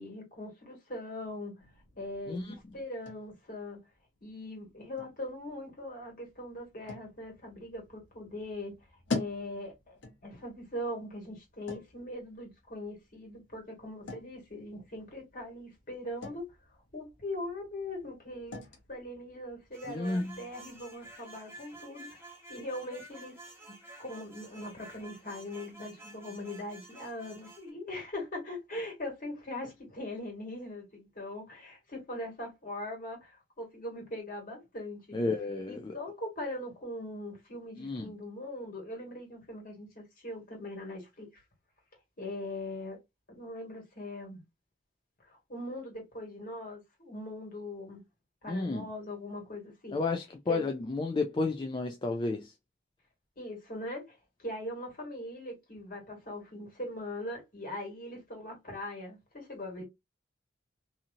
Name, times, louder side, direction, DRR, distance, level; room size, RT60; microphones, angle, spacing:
voice 1, 0.0-1.5 2.0-3.8 4.2-8.7 9.1-16.5 16.9-18.6 18.9-23.4 24.0-35.2 35.7-41.4 42.2-43.0 43.3-44.4 45.2-48.0 48.4-50.0 50.5-50.7 53.4-59.8, left 1 dB, 50° left, 1.8 m, -41 dB
sound 1, 1.6-21.2, left 3 dB, 90° left, 0.9 m, -46 dB
sound 2, 19.7-27.7, right 2 dB, 15° right, 1.2 m, -51 dB
voice 2, 19.9-20.3 35.1-35.9 37.8-38.1 48.5-48.9 49.9-52.5, left 3 dB, 25° left, 0.4 m, -32 dB
2.8 x 2.7 x 2.5 m
head